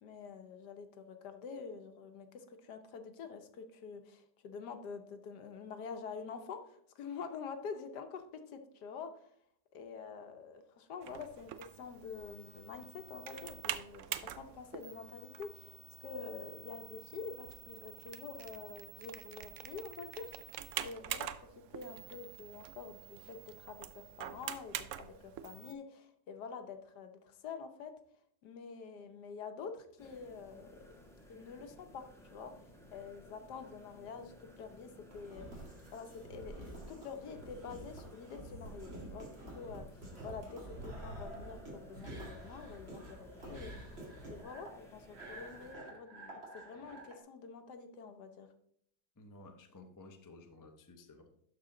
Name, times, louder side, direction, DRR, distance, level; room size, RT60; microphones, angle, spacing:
voice 1, 0.0-9.3 9.7-21.5 21.7-27.9 28.4-30.8 31.3-32.5 32.9-35.6 35.9-43.9 44.3-48.5, left 5 dB, 75° left, 7 dB, 1.4 m, -47 dB
sound 1, 11.0-25.7, right 11 dB, 80° right, 0.7 m, -46 dB
sound 2, 30.0-45.7, left 1 dB, ahead, 1.2 m, -58 dB
sound 3, 35.1-47.1, right 1 dB, 35° right, 2.3 m, -48 dB
voice 2, 49.2-51.3, left 2 dB, 20° left, 5 dB, 0.5 m, -55 dB
12.0 x 4.6 x 3.8 m, 0.69 s
omnidirectional pair, 1.8 m